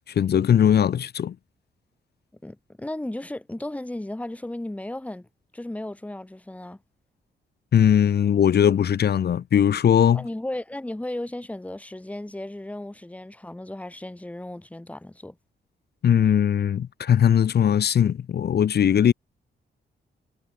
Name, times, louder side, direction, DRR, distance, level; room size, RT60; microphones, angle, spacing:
voice 1, 0.1-1.3 7.7-10.2 16.0-19.1, left 9 dB, 65° left, 3.6 m, -19 dB
voice 2, 2.4-5.3 5.5-6.8 10.1-15.4, left 1 dB, 5° left, 7.2 m, -35 dB
wide cardioid pair, 175°, 18 cm